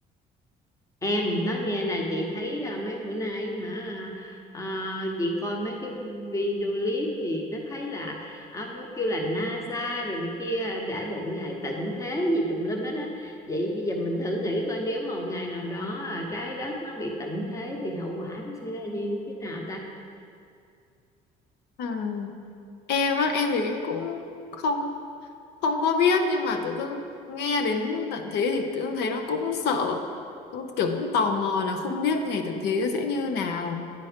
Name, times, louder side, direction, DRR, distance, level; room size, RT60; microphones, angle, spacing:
voice 1, 1.0-19.8, equal, 20° left, 1 dB, 1.0 m, -30 dB
voice 2, 21.8-22.3 22.9-24.2 24.5-24.9 25.6-30.0 30.5-33.8, left 4 dB, 80° left, 5 dB, 0.7 m, -26 dB
9.2 x 4.2 x 5.0 m, 2.4 s
cardioid pair, 110°, 17 cm